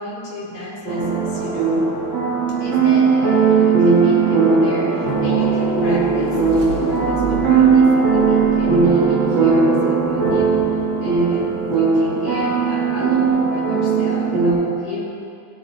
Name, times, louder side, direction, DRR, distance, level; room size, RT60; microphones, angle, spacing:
voice 1, 0.0-1.8 2.6-15.0, left 1 dB, 70° left, -7 dB, 4.2 m, -33 dB
sound 1, 0.9-8.8, left 2 dB, 20° left, 2.3 m, -32 dB
sound 2, 0.9-14.5, right 5 dB, 45° right, 3.0 m, -17 dB
sound 3, 5.5-9.6, right 3 dB, 20° right, 1.9 m, -34 dB
16.5 x 11.0 x 3.5 m, 2.6 s
omnidirectional pair, 3.4 m